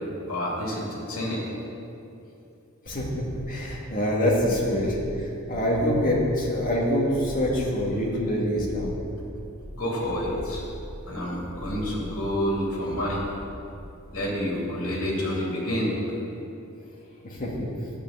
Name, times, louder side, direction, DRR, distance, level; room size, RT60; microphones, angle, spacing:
voice 1, 0.3-1.4 9.7-10.7 11.1-13.2 14.1-15.9, equal, 70° left, -4 dB, 2.8 m, -28 dB
sound 1, 2.9-14.2, equal, 10° right, 1.3 m, -41 dB
voice 2, 3.5-8.9 17.2-17.7, equal, 40° left, -3 dB, 2.1 m, -25 dB
10.5 x 5.5 x 8.1 m, 2.8 s
head